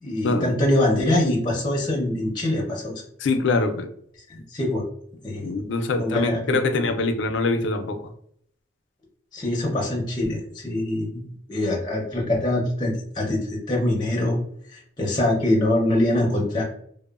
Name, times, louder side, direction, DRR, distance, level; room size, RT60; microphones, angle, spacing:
voice 1, 0.0-2.9 4.3-4.8 5.2-5.5 6.0-6.5 9.3-11.2 11.5-14.4 14.7-16.6, left 1 dB, 25° left, -2 dB, 0.6 m, -24 dB
voice 2, 3.2-3.9 5.4-8.0, left 3 dB, 75° left, 7 dB, 0.4 m, -23 dB
2.9 x 2.0 x 2.3 m, 0.65 s
head